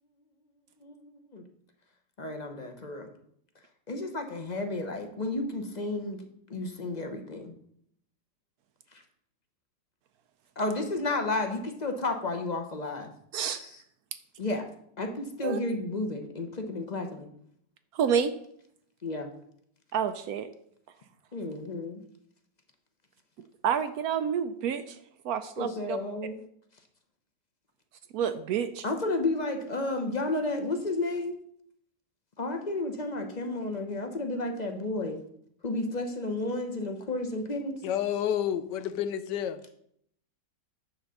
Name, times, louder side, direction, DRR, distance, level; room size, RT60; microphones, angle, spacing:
voice 1, 2.2-3.1 3.9-6.2 6.5-7.5 10.6-13.1 13.6-13.8 14.4-14.7 15.0-17.3 19.0-19.3 21.3-22.0 25.6-26.4 28.8-31.4 32.4-35.2 35.6-37.8, left 2 dB, 35° left, 5 dB, 0.8 m, -32 dB
voice 2, 17.9-18.3 19.9-20.5 23.6-25.0 25.2-26.0 28.1-28.8, right 8 dB, 70° right, 11 dB, 1.0 m, -28 dB
voice 3, 37.8-39.6, left 10 dB, 85° left, 12 dB, 1.3 m, -29 dB
10.0 x 3.8 x 6.9 m, 0.70 s
omnidirectional pair, 1.8 m